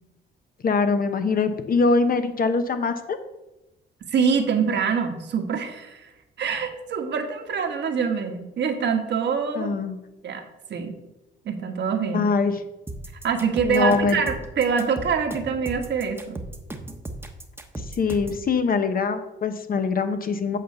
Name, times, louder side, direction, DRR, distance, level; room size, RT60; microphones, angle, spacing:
voice 1, 0.6-3.2 9.5-10.0 12.1-12.5 13.6-14.2 17.8-20.6, left 4 dB, 45° left, 8 dB, 1.0 m, -23 dB
voice 2, 4.1-6.1 6.4-9.8 10.2-10.4 10.7-10.9 11.4-12.3 13.2-16.4, right 6 dB, 60° right, 5 dB, 1.4 m, -25 dB
sound 1, 12.9-18.4, right 2 dB, 10° right, 1.1 m, -36 dB
8.5 x 4.0 x 6.7 m, 0.96 s
cardioid pair, 90°, 20 cm